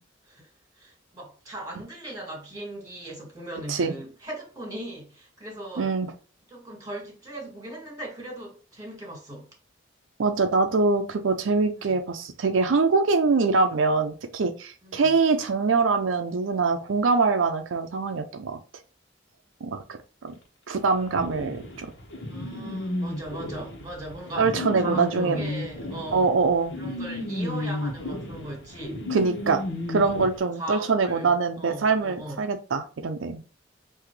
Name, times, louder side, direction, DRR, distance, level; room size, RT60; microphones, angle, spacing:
voice 1, 0.3-5.9 6.5-9.5 11.7-12.0 14.8-15.1 22.3-26.3 26.8-29.0 30.4-32.4, right 1 dB, 20° right, 1.9 m, -39 dB
voice 2, 5.8-6.1 10.2-18.6 19.6-20.3 20.7-21.9 24.4-25.5 26.1-26.7 29.1-29.6 29.9-33.4, right 4 dB, 90° right, 0.5 m, -24 dB
sound 1, 21.2-30.3, left 1 dB, 65° left, 1.3 m, -33 dB
5.7 x 2.7 x 3.2 m
head